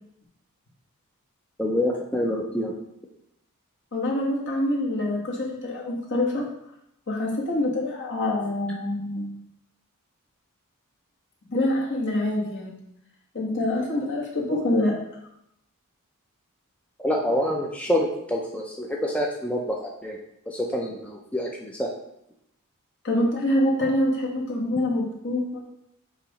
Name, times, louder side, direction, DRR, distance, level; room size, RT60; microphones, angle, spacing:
voice 1, 1.6-2.7 17.0-20.2 20.5-21.9, equal, 5° left, -1 dB, 0.6 m, -27 dB
voice 2, 3.9-6.5 7.1-9.3 11.5-12.7 13.3-15.0 23.0-25.6, left 1 dB, 55° left, -2 dB, 1.6 m, -25 dB
7.4 x 3.0 x 5.0 m, 0.79 s
head